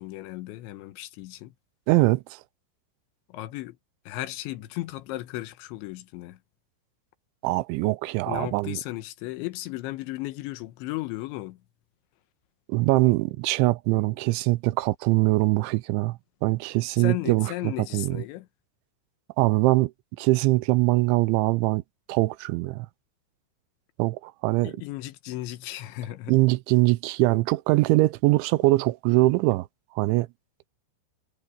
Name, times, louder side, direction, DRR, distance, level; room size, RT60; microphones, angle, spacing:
voice 1, 0.0-1.5 3.3-3.8 4.1-6.4 8.3-11.6 17.0-18.5 24.6-26.3, left 17 dB, 85° left, 3.3 m, -35 dB
voice 2, 1.9-2.2 7.4-8.8 12.7-18.2 19.4-19.9 20.2-21.8 22.1-22.9 24.0-24.7 26.3-29.7 30.0-30.3, right 21 dB, 85° right, 3.1 m, -22 dB
omnidirectional pair, 5.3 m